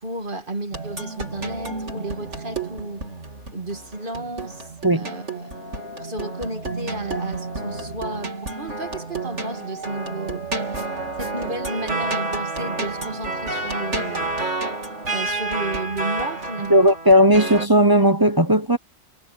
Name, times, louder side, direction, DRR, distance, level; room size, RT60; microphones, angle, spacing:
voice 1, 0.0-3.1 3.5-5.5 6.0-10.5 11.2-14.3 15.1-16.9, right 2 dB, 45° right, 2.3 m, -33 dB
sound 1, 0.7-17.7, right 3 dB, 85° right, 3.7 m, -30 dB
voice 2, 16.7-18.8, equal, 20° right, 0.9 m, -16 dB
omnidirectional pair, 1.2 m